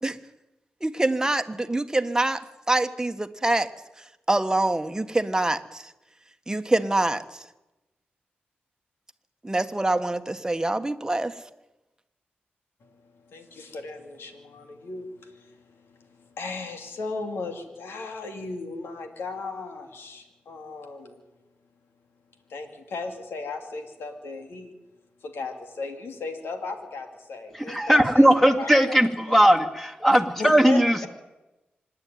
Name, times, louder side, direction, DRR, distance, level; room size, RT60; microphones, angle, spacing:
voice 1, 0.8-3.7 4.3-5.9 6.5-7.4 9.4-11.3, right 2 dB, 15° right, 8 dB, 1.4 m, -25 dB
voice 2, 12.8-21.2 22.5-24.7 25.2-29.0 29.3-29.4 30.1-31.1, left 3 dB, 85° left, 5 dB, 2.6 m, -36 dB
voice 3, 27.5-31.1, equal, 5° left, 3 dB, 2.5 m, -19 dB
25.5 x 11.0 x 9.4 m, 1.0 s
cardioid pair, 60°, 4 cm